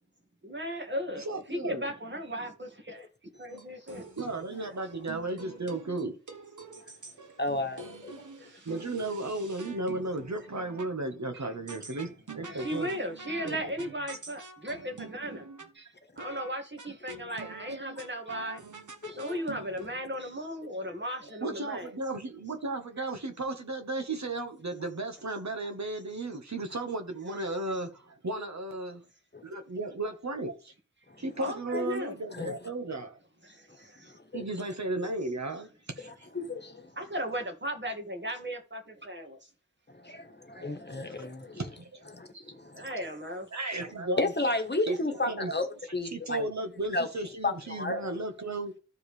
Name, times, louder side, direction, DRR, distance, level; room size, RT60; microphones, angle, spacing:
voice 1, 0.4-3.1 3.4-4.1 4.6-5.1 8.4-8.7 11.3-11.5 11.9-12.1 12.4-15.5 15.7-18.6 19.1-21.9 27.3-27.4 31.4-32.2 33.4-34.2 37.0-39.5 40.5-41.0 41.5-41.6 42.7-43.5, equal, 40° right, 2.1 m, -37 dB
voice 2, 1.2-1.9 4.2-6.2 8.6-12.9 13.4-13.6 21.4-28.9 29.5-30.7 31.2-33.2 34.3-35.7 36.0-36.1 41.5-42.0 42.3-42.4 43.5-44.3 44.9-45.5 46.1-48.7, right 2 dB, 65° right, 1.3 m, -34 dB
sound 1, 3.5-10.9 11.7-15.7 16.2-16.5 16.8-20.0, right 3 dB, 85° right, 1.1 m, -46 dB
voice 3, 7.4-8.2 19.0-19.2 32.3-32.6 34.3-34.5 36.0-36.9 39.9-41.6 42.1-42.9 44.2-46.5 46.9-47.1 47.4-48.1, left 2 dB, 35° left, 1.3 m, -33 dB
14.0 x 4.7 x 3.3 m
wide cardioid pair, 45°, 30 cm